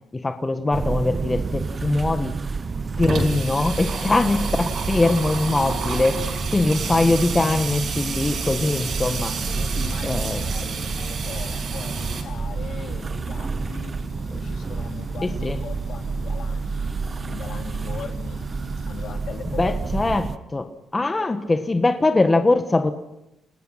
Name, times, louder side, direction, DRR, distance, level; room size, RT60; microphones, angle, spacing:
voice 1, 0.1-2.3 3.0-9.3 10.0-10.4 15.2-15.6 19.6-20.7 20.9-22.9, left 2 dB, 20° left, 8 dB, 1.5 m, -22 dB
sound 1, 0.7-20.4, right 4 dB, 35° right, 0.9 m, -29 dB
Water tap faucet / Sink (filling or washing), 1.6-1.7 2.0-2.1 2.3-12.2, right 5 dB, 55° right, 6.4 m, -31 dB
voice 2, 3.9-4.5 9.5-13.9 14.3-18.5 18.7-20.2, left 7 dB, 65° left, 5 dB, 2.8 m, -40 dB
sound 2, 5.4-19.1, left 8 dB, 80° left, 2.6 m, -44 dB
29.0 x 19.0 x 5.8 m, 0.88 s
cardioid pair, 90°, 0 cm